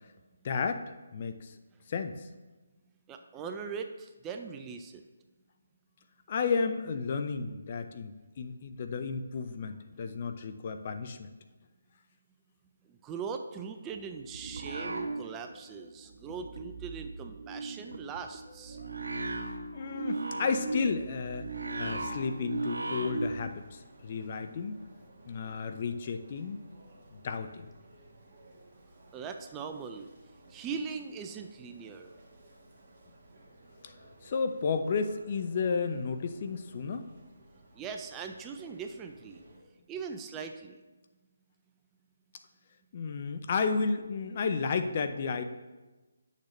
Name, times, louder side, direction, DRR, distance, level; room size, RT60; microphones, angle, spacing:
voice 1, 0.4-1.6 1.9-2.3 6.3-11.3 19.7-21.5 21.8-24.8 25.3-26.6 27.1-27.7 33.8-33.9 34.2-37.1 42.9-45.4, left 5 dB, 40° left, 8 dB, 0.5 m, -32 dB
voice 2, 3.1-5.0 12.9-18.8 29.1-30.1 30.5-32.1 37.7-39.4 39.9-40.8, right 5 dB, 15° right, 5 dB, 0.5 m, -40 dB
sound 1, 13.9-14.0 14.3-15.9 18.4-21.4, left 1 dB, 85° left, 2.2 m, -56 dB
sound 2, 13.9-15.7 16.0-23.5, right 2 dB, 75° right, 0.9 m, -37 dB
sound 3, 21.3-39.6, right 1 dB, 40° right, 1.6 m, -57 dB
9.5 x 6.6 x 3.2 m, 1.2 s
figure-of-eight pair, 150°, 0 cm